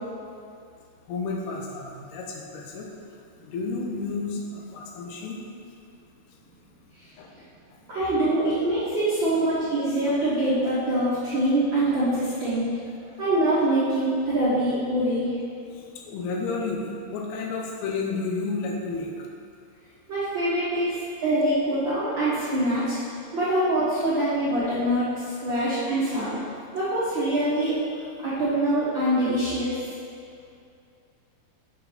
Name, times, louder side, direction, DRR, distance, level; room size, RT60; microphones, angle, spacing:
voice 1, 1.1-2.9 3.4-5.4 7.2-7.3 16.1-16.8 17.1-19.1, left 4 dB, 90° left, -1 dB, 2.9 m, -31 dB
voice 2, 7.9-12.7 13.2-15.3 20.1-22.9 23.3-26.4 26.7-27.8 28.2-29.9, right 1 dB, 75° right, -11 dB, 1.1 m, -24 dB
7.3 x 6.8 x 4.0 m, 2.4 s
omnidirectional pair, 4.5 m